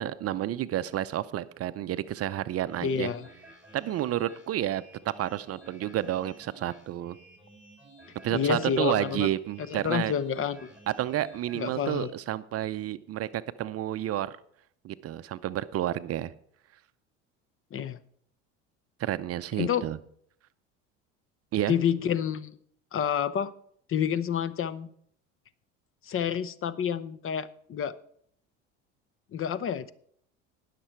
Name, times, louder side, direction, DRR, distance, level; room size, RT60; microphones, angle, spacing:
voice 1, 0.0-3.1 3.7-7.2 8.2-10.1 11.0-14.4 14.8-16.3 19.0-20.0 21.5-21.7, right 12 dB, 40° right, 0.6 m, -30 dB
sound 1, 2.6-12.1, right 1 dB, 5° right, 5.4 m, -54 dB
voice 2, 2.8-3.3 8.3-9.3 9.7-10.7 11.5-12.1 17.7-18.0 19.6-19.9 21.7-22.6 22.9-23.5 23.9-24.9 26.0-28.0 29.3-29.9, left 8 dB, 35° left, 0.8 m, -29 dB
19.0 x 6.7 x 4.5 m
hypercardioid pair, 80°, 36 cm